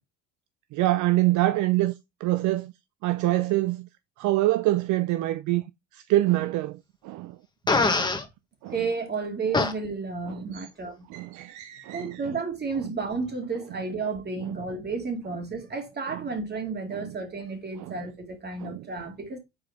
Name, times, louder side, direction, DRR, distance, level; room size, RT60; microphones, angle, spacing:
voice 1, 0.7-1.9 2.2-2.7 3.0-3.9 4.2-5.6 5.9-6.8 7.0-7.4 7.8-8.1 8.6-8.7 10.3-10.6 11.1-12.3 14.5-14.6 16.1-16.2 16.9-17.1 17.8-18.0 18.6-18.8, right 16 dB, 60° right, 0.5 m, -25 dB
Fart, 7.7-8.2 9.5-9.7, left 3 dB, 15° left, 1.5 m, -22 dB
voice 2, 8.7-11.1 11.9-19.4, right 4 dB, 30° right, 2.4 m, -32 dB
6.4 x 4.5 x 3.6 m
supercardioid pair, 90°, 33 cm